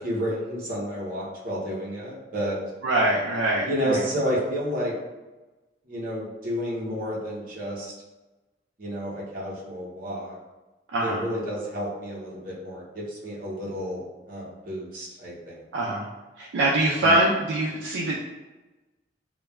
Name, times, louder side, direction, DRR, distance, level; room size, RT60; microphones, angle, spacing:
voice 1, 0.0-2.6 3.6-5.0 5.9-7.9 8.8-10.4 11.0-15.6 17.0-17.2, equal, 50° right, -5 dB, 0.7 m, -31 dB
voice 2, 2.8-4.0 10.9-11.2 15.7-16.0 16.4-18.1, right 1 dB, 85° right, -4 dB, 0.4 m, -23 dB
3.0 x 2.2 x 2.2 m, 1.1 s
head